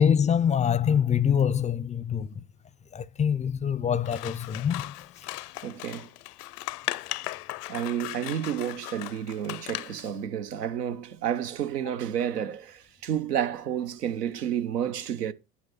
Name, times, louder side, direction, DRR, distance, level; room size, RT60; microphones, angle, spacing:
voice 1, 0.0-2.4 2.9-4.9, left 8 dB, 15° left, 0.5 m, -24 dB
Scissors, 4.0-10.1, left 18 dB, 75° left, 0.6 m, -37 dB
voice 2, 5.6-6.1 7.7-15.3, right 9 dB, 85° right, 1.0 m, -30 dB
9.5 x 6.2 x 5.6 m
hypercardioid pair, 80°, 46 cm